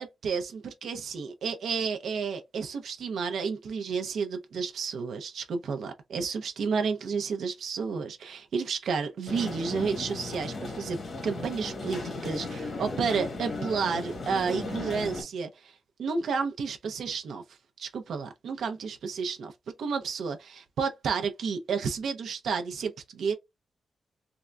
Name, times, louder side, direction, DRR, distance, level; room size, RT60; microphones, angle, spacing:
voice 1, 0.0-15.7 16.0-17.4 17.8-19.5 19.8-23.3, right 5 dB, 85° right, 0.6 m, -31 dB
sound 1, 9.3-15.2, left 3 dB, 45° left, 1.3 m, -36 dB
3.7 x 2.2 x 2.2 m
wide cardioid pair, 130°, 0 cm